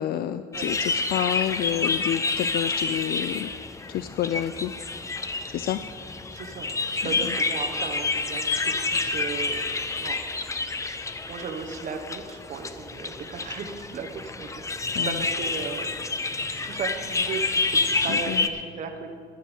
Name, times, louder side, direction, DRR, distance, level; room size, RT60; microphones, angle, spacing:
voice 1, 0.0-3.5 3.9-5.0 5.5-5.8 7.0-7.2 14.9-15.3 18.1-18.5, left 11 dB, 65° left, 12 dB, 0.4 m, -29 dB
sound 1, 0.5-18.5, left 3 dB, 20° left, 0.7 m, -29 dB
voice 2, 6.3-6.7 7.0-9.6 10.0-10.2 11.3-15.9 16.6-19.1, right 5 dB, 50° right, 4 dB, 1.1 m, -36 dB
11.0 x 8.8 x 7.0 m, 2.1 s
cardioid pair, 110°, 17 cm